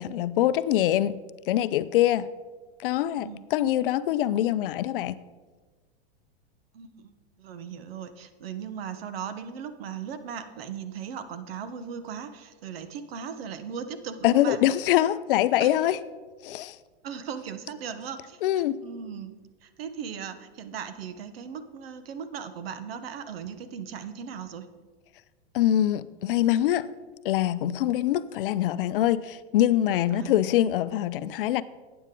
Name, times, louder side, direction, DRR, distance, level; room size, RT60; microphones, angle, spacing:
voice 1, 0.0-2.3 2.8-5.2 14.2-16.0 16.4-16.8 18.4-18.8 25.5-26.9 27.2-31.6, left 12 dB, 60° left, 0.5 m, -24 dB
voice 2, 6.7-14.6 15.6-15.7 17.0-18.4 18.8-24.7 30.1-30.3, right 7 dB, 70° right, 1.1 m, -38 dB
12.0 x 8.7 x 3.7 m
hypercardioid pair, 140°, 31 cm